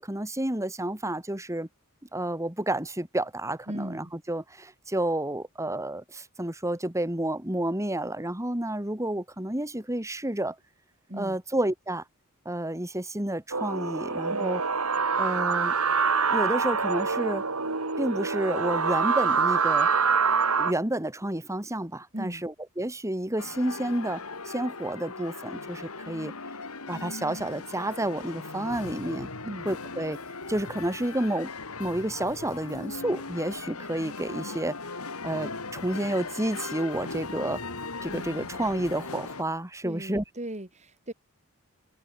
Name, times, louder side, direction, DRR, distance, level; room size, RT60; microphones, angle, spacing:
voice 1, 0.0-1.7 2.1-10.6 11.2-12.0 12.4-14.6 15.2-15.7 16.3-17.4 18.0-19.9 20.6-26.3 26.9-29.3 29.7-30.2 30.5-31.5 31.8-34.8 35.2-37.6 38.0-40.2, right 1 dB, 15° right, 2.7 m, -30 dB
voice 2, 3.7-4.1 11.1-11.4 14.3-14.5 22.1-22.4 29.4-29.7 39.8-41.1, right 1 dB, 30° right, 4.5 m, -37 dB
sound 1, 13.5-20.7, right 5 dB, 85° right, 4.1 m, -25 dB
sound 2, 23.4-39.4, left 3 dB, 85° left, 3.2 m, -38 dB
head